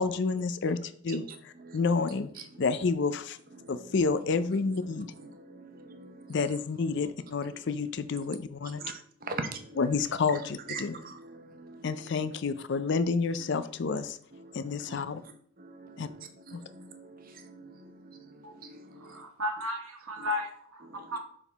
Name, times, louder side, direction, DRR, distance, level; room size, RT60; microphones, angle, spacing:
voice 1, 0.0-1.3 1.7-2.3 2.6-3.4 3.7-5.1 6.3-8.8 9.8-10.9 11.8-14.2 14.5-15.2 16.0-16.1 16.5-16.6, left 4 dB, 55° left, 13 dB, 0.4 m, -29 dB
voice 2, 1.1-2.1 2.3-2.8 3.5-7.1 7.4-7.6 8.6-8.9 9.2-10.0 10.3-12.4 13.4-13.5 13.9-15.2 15.6-19.2 20.2-20.3 20.8-21.2, right 3 dB, 40° right, 7 dB, 0.7 m, -45 dB
voice 3, 19.0-21.2, left 1 dB, 80° right, 4 dB, 1.3 m, -34 dB
7.0 x 3.7 x 4.0 m, 0.62 s
head